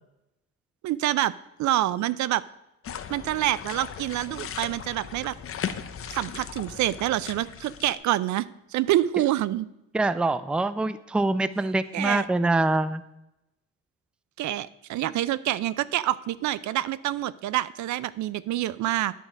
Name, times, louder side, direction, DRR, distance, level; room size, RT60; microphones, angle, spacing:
voice 1, 0.8-1.3 1.6-2.4 3.1-5.3 6.1-8.5 8.7-9.7 11.9-12.3 14.4-19.1, right 14 dB, 70° right, 18 dB, 0.5 m, -26 dB
sound 1, 2.8-7.9, left 8 dB, 45° left, 0.7 m, -37 dB
voice 2, 9.9-13.0, right 2 dB, 5° right, 14 dB, 0.4 m, -24 dB
10.0 x 4.7 x 6.4 m, 0.90 s
cardioid pair, 90°, 30 cm